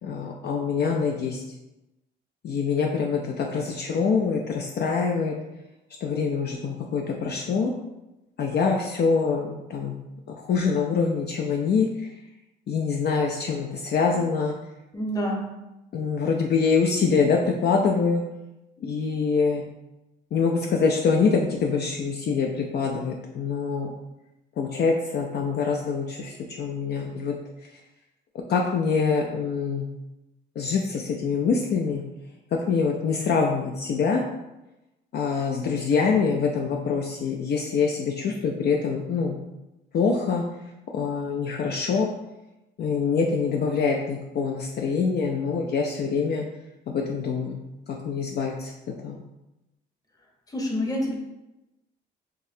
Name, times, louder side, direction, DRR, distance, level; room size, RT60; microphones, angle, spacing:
voice 1, 0.0-1.4 2.4-5.4 6.0-7.7 8.4-12.2 12.7-14.6 15.9-18.2 18.8-19.7 20.3-24.0 24.6-27.3 27.6-27.8 28.5-29.9 30.6-32.0 32.5-34.2 35.1-39.4 39.9-40.4 40.9-42.1 42.8-46.5 46.9-47.6 47.9-49.2, left 5 dB, 55° left, 1 dB, 0.4 m, -25 dB
voice 2, 14.9-15.4 50.5-51.1, equal, 20° left, 0 dB, 0.8 m, -27 dB
3.9 x 2.6 x 2.7 m, 0.98 s
cardioid pair, 90°, 20 cm